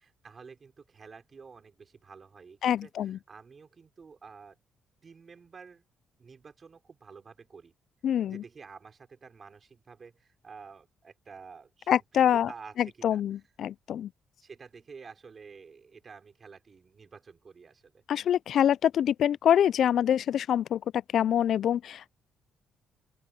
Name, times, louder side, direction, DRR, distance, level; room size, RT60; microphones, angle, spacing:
voice 1, 0.0-4.6 5.0-5.9 6.2-7.7 8.3-13.2 14.4-18.0, right 5 dB, 40° right, 5.1 m, -50 dB
voice 2, 2.6-3.2 8.0-8.4 11.9-12.5 12.8-14.1 18.1-22.1, left 10 dB, 65° left, 0.3 m, -25 dB
open air
cardioid pair, 90°, 0 cm